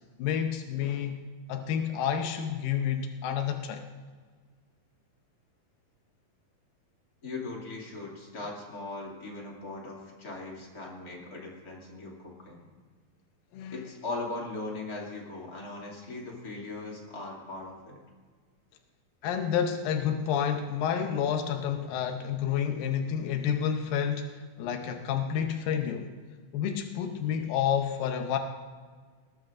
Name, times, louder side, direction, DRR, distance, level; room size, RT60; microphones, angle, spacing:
voice 1, 0.2-1.2 1.5-3.8 13.5-13.8 19.2-26.1 26.5-28.4, left 8 dB, 90° left, 5 dB, 2.6 m, -29 dB
voice 2, 7.2-12.7 13.7-18.0, left 2 dB, 30° left, -2 dB, 2.5 m, -39 dB
20.0 x 19.5 x 2.6 m, 1.5 s
omnidirectional pair, 3.9 m